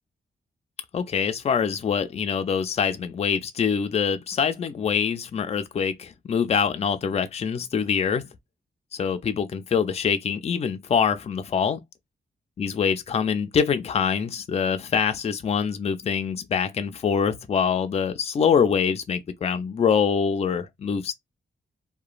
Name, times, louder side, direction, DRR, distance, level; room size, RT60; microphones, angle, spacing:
voice 1, 0.9-8.2 8.9-11.8 12.6-21.1, left 6 dB, 35° left, 0.4 m, -24 dB
2.9 x 2.2 x 2.4 m
wide cardioid pair, 135°, 18 cm